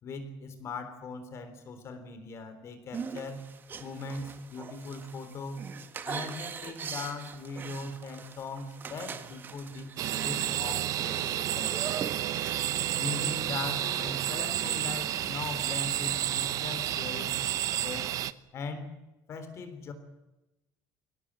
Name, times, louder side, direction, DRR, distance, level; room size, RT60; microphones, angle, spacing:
voice 1, 0.0-3.5 3.8-5.7 6.0-11.7 13.0-18.1 18.5-18.9 19.3-19.9, left 3 dB, 35° left, 10 dB, 3.6 m, -40 dB
sound 1, 2.9-13.3, right 6 dB, 25° right, 1.6 m, -42 dB
sound 2, 10.0-18.3, right 13 dB, 45° right, 0.9 m, -31 dB
23.5 x 18.0 x 8.9 m, 0.98 s
cardioid pair, 175°, 8 cm